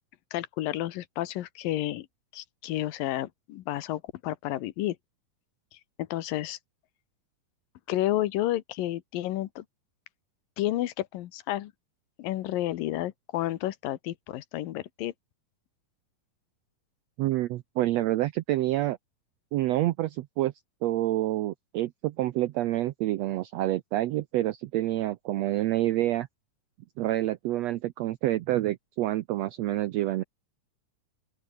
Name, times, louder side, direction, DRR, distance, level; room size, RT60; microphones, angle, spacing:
voice 1, 0.3-2.1 2.3-5.0 6.0-6.6 7.9-9.6 10.6-11.7 12.2-15.1, left 14 dB, 85° left, 2.8 m, -31 dB
voice 2, 17.2-19.0 19.5-20.5 20.8-26.3 27.0-30.2, right 15 dB, 90° right, 1.4 m, -28 dB
open air
omnidirectional pair, 3.9 m